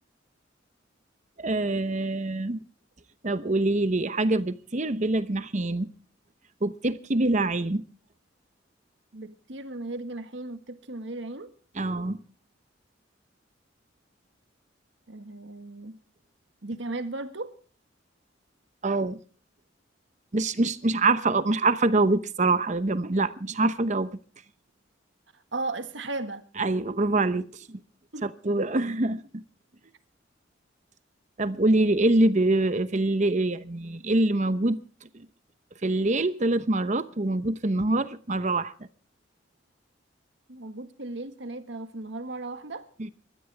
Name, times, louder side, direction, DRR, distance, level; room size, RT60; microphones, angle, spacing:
voice 1, 1.4-2.6 3.2-5.9 6.6-7.9 11.8-12.2 18.8-19.2 20.3-24.1 26.6-27.8 28.2-29.4 31.4-34.8 35.1-35.3 35.8-38.7 43.0-43.1, right 2 dB, 40° right, 0.9 m, -25 dB
voice 2, 9.1-11.5 15.1-16.0 16.6-17.5 25.5-26.4 28.1-28.3 40.5-42.9, right 2 dB, 70° right, 1.7 m, -36 dB
26.0 x 13.5 x 3.4 m
head